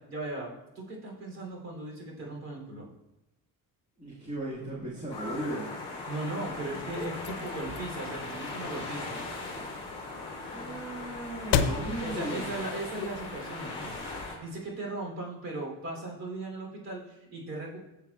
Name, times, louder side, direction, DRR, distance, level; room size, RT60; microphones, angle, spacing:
voice 1, 0.1-2.9 6.1-9.2 12.0-13.9 14.4-17.9, right 2 dB, 40° right, -1 dB, 3.2 m, -38 dB
voice 2, 4.0-5.7 10.5-12.5, right 1 dB, 20° right, -7 dB, 1.8 m, -36 dB
sound 1, 5.1-14.4, left 2 dB, 15° left, 2.6 m, -39 dB
sound 2, 6.5-13.6, left 7 dB, 65° left, 0.8 m, -36 dB
15.0 x 7.1 x 2.4 m, 0.95 s
cardioid pair, 155°, 39 cm